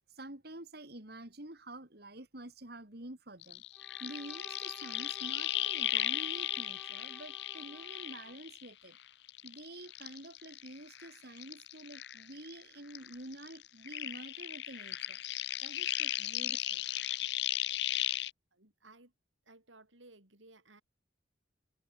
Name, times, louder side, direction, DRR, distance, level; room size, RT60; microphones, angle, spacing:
voice 1, 0.2-3.6 4.0-9.0 9.4-15.2 15.6-16.8, right 1 dB, 55° right, 2.9 m, -48 dB
sound 1, 3.4-8.9 9.3-12.6 12.9-18.3, left 14 dB, 60° left, 0.7 m, -36 dB
Bowed string instrument, 3.7-8.4, left 1 dB, 5° left, 4.1 m, -54 dB
voice 2, 18.5-19.1 19.5-20.8, right 2 dB, 75° right, 6.9 m, -58 dB
head